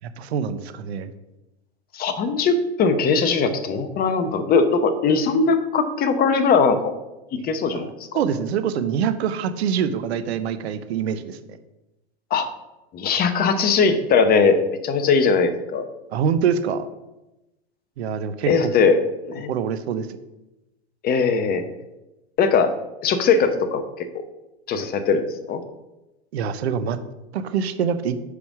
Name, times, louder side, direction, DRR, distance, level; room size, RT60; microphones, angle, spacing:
voice 1, 0.0-1.1 7.4-11.4 16.1-16.9 18.0-18.7 19.5-20.1 26.3-27.0 27.3-28.2, right 7 dB, 75° right, 12 dB, 0.8 m, -25 dB
voice 2, 1.9-6.9 7.4-7.9 12.3-12.5 12.9-15.9 18.5-19.0 19.2-19.5 21.0-21.6 22.4-22.7 23.0-24.2 24.7-25.6, left 5 dB, 30° left, 9 dB, 0.8 m, -20 dB
5.2 x 4.8 x 6.0 m, 0.98 s
hypercardioid pair, 105°, 33 cm